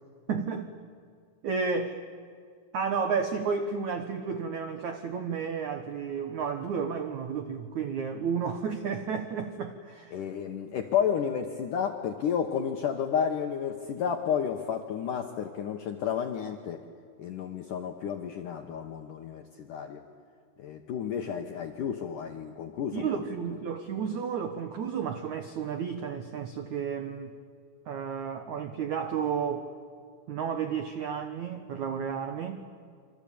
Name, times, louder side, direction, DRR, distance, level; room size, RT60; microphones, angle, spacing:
voice 1, 0.3-0.7 1.4-2.0 2.7-10.2 22.9-27.3 27.9-29.7 30.3-32.6, right 6 dB, 90° right, 7 dB, 1.6 m, -32 dB
voice 2, 10.1-16.8 17.2-20.0 20.6-23.2, left 8 dB, 75° left, 4 dB, 1.9 m, -31 dB
27.0 x 25.0 x 8.7 m, 2.2 s
omnidirectional pair, 5.3 m